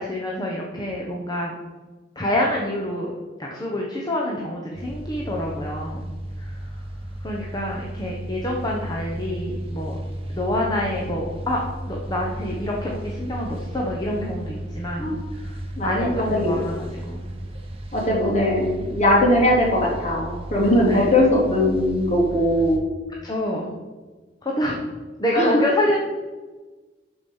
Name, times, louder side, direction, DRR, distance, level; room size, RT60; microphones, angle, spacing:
voice 1, 0.0-1.5 2.1-3.1 3.4-6.0 6.4-6.8 7.2-10.0 10.3-17.3 18.2-18.3 20.9-21.1 23.2-23.7 24.4-24.8 25.2-26.0, left 1 dB, 20° left, -2 dB, 1.2 m, -27 dB
sound 1, 4.7-22.8, right 1 dB, 30° right, 1.4 m, -34 dB
voice 2, 15.8-16.6 17.9-22.9 25.3-25.6, left 1 dB, 40° left, -4 dB, 3.3 m, -20 dB
12.0 x 5.1 x 5.6 m, 1.3 s
head